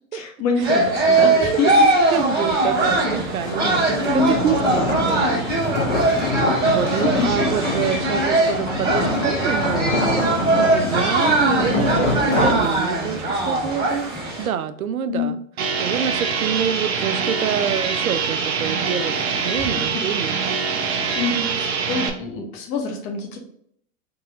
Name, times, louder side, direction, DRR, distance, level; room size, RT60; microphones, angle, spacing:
voice 1, 0.1-1.9 3.6-3.8 4.1-4.3 7.0-7.5 15.1-15.3 19.6-20.0 21.1-23.4, left 4 dB, 40° left, 2 dB, 1.3 m, -26 dB
sound 1, 0.6-14.5, right 2 dB, 25° right, 1.7 m, -21 dB
voice 2, 1.2-1.6 2.1-4.0 4.3-5.8 6.6-15.4 15.8-19.2 19.4-20.4, right 8 dB, 85° right, 12 dB, 0.5 m, -27 dB
sound 2, 2.3-13.3, left 1 dB, 75° left, 1.6 m, -25 dB
sound 3, 15.6-22.1, right 5 dB, 50° right, 0.8 m, -24 dB
3.9 x 2.8 x 3.6 m, 0.67 s
hypercardioid pair, 105°, 41 cm